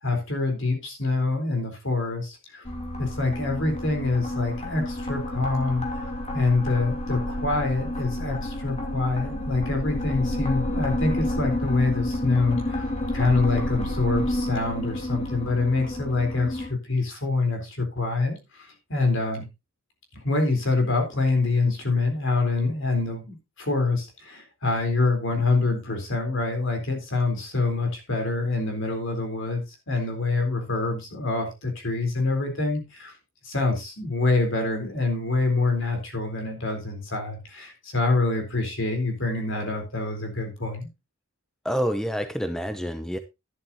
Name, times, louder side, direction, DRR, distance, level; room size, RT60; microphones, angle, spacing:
voice 1, 0.0-2.6 3.0-5.8 6.3-12.8 13.1-19.4 20.1-33.1 33.4-40.9, left 3 dB, 60° left, 4.0 m, -26 dB
sound 1, 2.6-16.7, left 1 dB, 30° left, 2.7 m, -30 dB
voice 2, 41.6-43.2, equal, ahead, 0.6 m, -27 dB
11.5 x 11.0 x 2.9 m
head